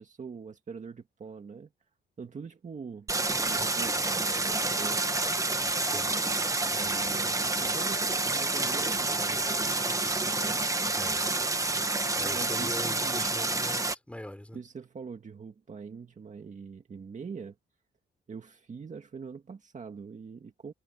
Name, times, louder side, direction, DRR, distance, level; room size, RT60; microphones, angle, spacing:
voice 1, 0.0-1.7 2.2-3.1 3.4-5.1 6.7-10.0 12.3-13.3 14.5-17.6 18.3-20.7, right 5 dB, 40° right, 1.9 m, -43 dB
Stream, 3.1-14.0, right 2 dB, 15° right, 1.3 m, -28 dB
voice 2, 5.8-6.1 10.9-11.2 12.1-14.6, left 1 dB, 5° left, 4.3 m, -41 dB
wide cardioid pair, 130°, 20 cm